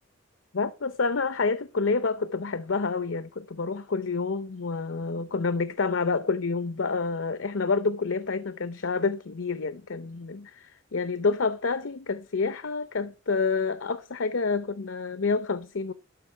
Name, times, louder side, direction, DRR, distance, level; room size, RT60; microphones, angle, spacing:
voice 1, 0.5-15.9, left 4 dB, 70° left, 0.7 m, -28 dB
12.5 x 5.5 x 7.0 m
head